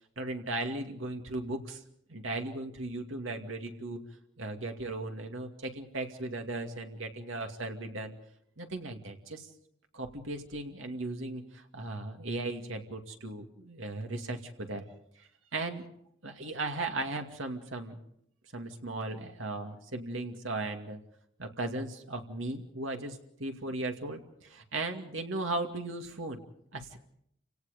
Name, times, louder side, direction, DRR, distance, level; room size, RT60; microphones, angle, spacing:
voice 1, 0.2-1.8 2.1-4.0 4.4-8.2 8.6-9.5 9.9-14.8 15.2-15.8 16.2-18.0 18.5-21.0 21.4-26.4 26.7-27.0, right 2 dB, 85° right, 4 dB, 2.5 m, -37 dB
29.5 x 17.5 x 5.2 m, 0.72 s
head